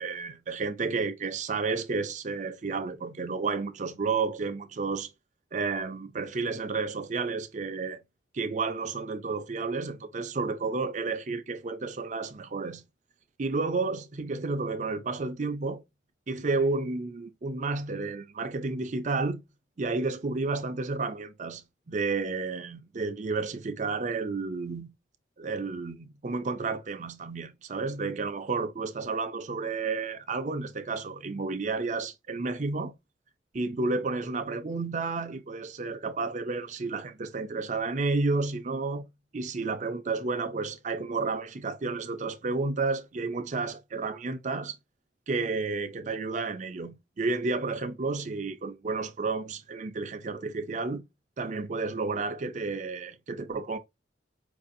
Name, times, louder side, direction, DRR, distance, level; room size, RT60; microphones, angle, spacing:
voice 1, 0.0-5.1 5.5-8.0 8.3-12.8 13.4-15.8 16.3-19.4 19.8-24.9 25.4-32.9 33.5-39.1 39.3-44.8 45.3-51.0 51.4-53.8, right 3 dB, 40° right, 0.5 m, -31 dB
4.8 x 2.6 x 2.5 m
head